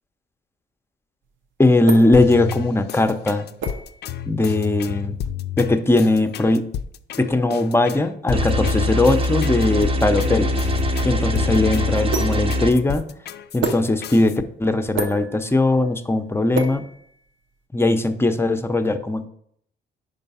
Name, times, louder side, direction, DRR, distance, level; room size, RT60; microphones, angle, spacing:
sound 1, 1.2-17.6, right 4 dB, 75° right, 0.8 m, -34 dB
voice 1, 1.6-3.5 4.3-5.2 5.6-6.6 7.2-10.5 11.0-13.1 13.5-16.8 17.7-19.3, left 2 dB, 10° left, 8 dB, 0.6 m, -19 dB
sound 2, 2.1-14.4, left 10 dB, 55° left, 0.4 m, -31 dB
sound 3, 8.3-12.7, left 1 dB, 30° right, 0.7 m, -22 dB
5.3 x 4.4 x 5.5 m, 0.68 s
cardioid pair, 90°, 20 cm